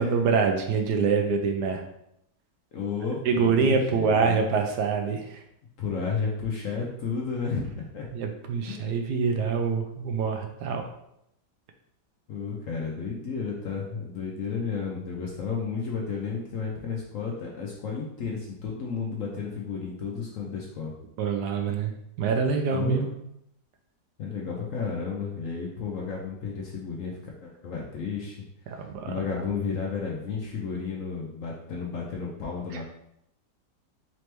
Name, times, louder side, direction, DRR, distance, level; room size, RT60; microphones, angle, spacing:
voice 1, 0.0-1.8 3.2-5.4 8.1-10.9 21.2-23.1 28.7-29.2 32.7-32.8, right 5 dB, 75° right, 4 dB, 1.1 m, -25 dB
voice 2, 2.7-4.5 5.8-8.1 8.7-8.9 12.3-20.9 22.7-23.1 24.2-27.1 27.4-28.4 28.7-32.8, left 5 dB, 65° left, -2 dB, 0.8 m, -32 dB
4.2 x 3.0 x 3.2 m, 0.78 s
omnidirectional pair, 1.9 m